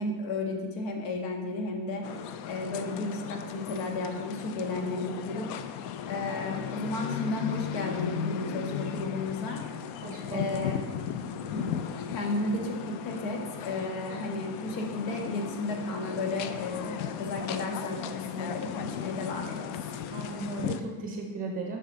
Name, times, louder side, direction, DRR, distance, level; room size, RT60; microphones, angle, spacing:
voice 1, 0.0-2.0 2.4-5.5 6.1-9.6 10.3-10.8 11.5-11.7 12.1-19.7, left 2 dB, 90° left, 2 dB, 1.5 m, -33 dB
sound 1, 2.0-20.8, left 8 dB, 65° left, 0.6 m, -36 dB
voice 2, 10.0-10.7 11.3-11.4 20.1-21.8, right 3 dB, 20° right, 1 dB, 0.5 m, -36 dB
8.4 x 5.6 x 3.8 m, 1.3 s
cardioid pair, 180°, 48 cm